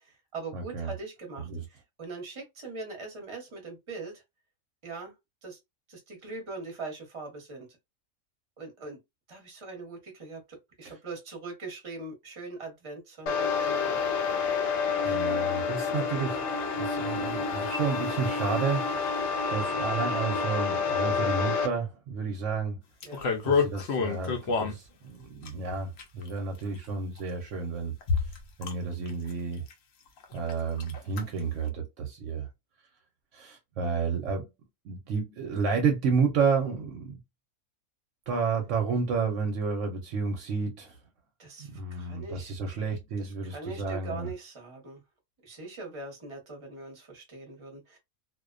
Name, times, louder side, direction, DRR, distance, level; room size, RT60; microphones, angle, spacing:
voice 1, 0.0-4.2 4.8-5.1 5.4-5.6 5.9-7.7 8.6-9.0 9.3-14.1 15.0-15.3 23.0-23.3 41.4-42.5 43.2-45.0 45.4-48.0, right 3 dB, 25° right, 0.8 m, -42 dB
voice 2, 0.5-0.9 1.4-1.6 10.8-11.0 15.0-16.4 16.8-18.9 19.5-22.8 23.4-27.9 28.3-29.6 30.3-32.5 33.3-34.5 34.8-37.2 38.3-41.0 41.6-44.3, right 5 dB, 70° right, 0.9 m, -31 dB
sound 1, 13.3-21.7, left 5 dB, 80° left, 1.0 m, -29 dB
sound 2, 23.0-24.8 25.5-26.3 27.2-27.3 28.0-28.7 29.1-29.3 29.7-29.8 30.2-30.5 30.8-31.2 31.7-31.8, left 5 dB, 65° left, 0.7 m, -28 dB
2.4 x 2.1 x 2.4 m
omnidirectional pair, 1.5 m